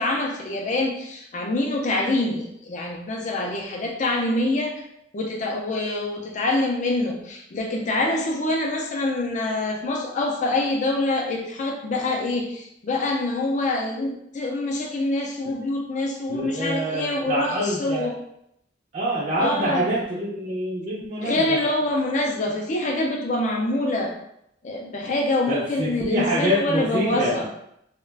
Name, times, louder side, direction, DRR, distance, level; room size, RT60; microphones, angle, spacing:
voice 1, 0.0-4.8 5.1-18.2 19.4-19.9 21.2-24.1 24.6-27.5, left 2 dB, 45° left, 1 dB, 0.4 m, -25 dB
voice 2, 16.3-18.1 18.9-21.6 25.5-27.5, equal, 45° right, -7 dB, 0.5 m, -26 dB
2.3 x 2.2 x 3.2 m, 0.76 s
head